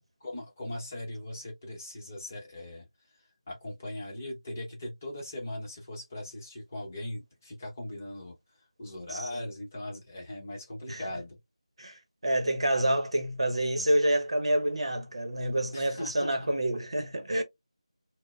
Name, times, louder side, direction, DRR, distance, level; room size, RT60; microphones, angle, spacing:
voice 1, 0.2-2.9 3.5-8.3 8.8-11.4 15.7-16.4, left 1 dB, 25° left, 0.9 m, -39 dB
voice 2, 9.1-9.4 10.9-11.0 11.8-17.4, right 1 dB, 60° right, 0.8 m, -28 dB
4.3 x 2.1 x 2.3 m
figure-of-eight pair, 175°, 3 cm